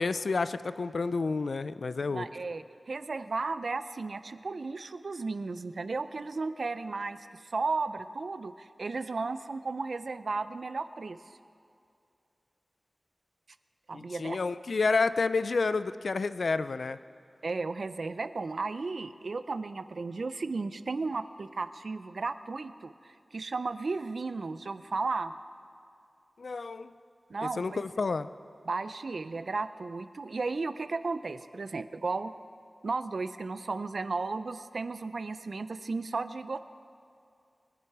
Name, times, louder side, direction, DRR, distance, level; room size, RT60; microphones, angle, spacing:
voice 1, 0.0-2.3 13.9-17.0 26.4-26.9 27.4-28.3, left 4 dB, 80° left, 14 dB, 0.4 m, -30 dB
voice 2, 2.1-11.2 13.9-14.4 17.4-25.3 27.3-27.8 28.7-32.3 32.8-36.6, right 3 dB, 75° right, 13 dB, 0.5 m, -34 dB
22.0 x 10.5 x 4.8 m, 2.4 s
wide cardioid pair, 55°, 0 cm